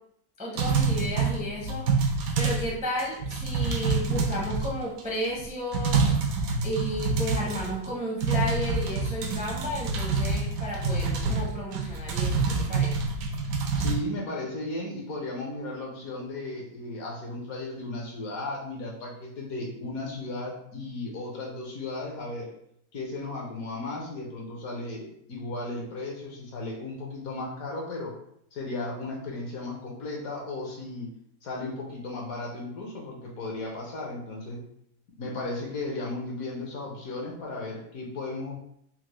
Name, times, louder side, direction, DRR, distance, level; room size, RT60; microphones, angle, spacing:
voice 1, 0.4-1.8 2.4-6.1 6.6-13.1, equal, 10° right, -3 dB, 0.4 m, -33 dB
sound 1, 0.6-2.7 3.0-5.0 5.4-5.5 5.7-7.9 8.2-14.0, right 4 dB, 75° right, 1.0 m, -27 dB
voice 2, 13.7-22.5 22.9-28.1 28.5-31.1 31.4-34.6 35.2-38.6, left 2 dB, 75° left, -1 dB, 1.3 m, -35 dB
4.4 x 2.1 x 3.0 m, 0.72 s
omnidirectional pair, 1.6 m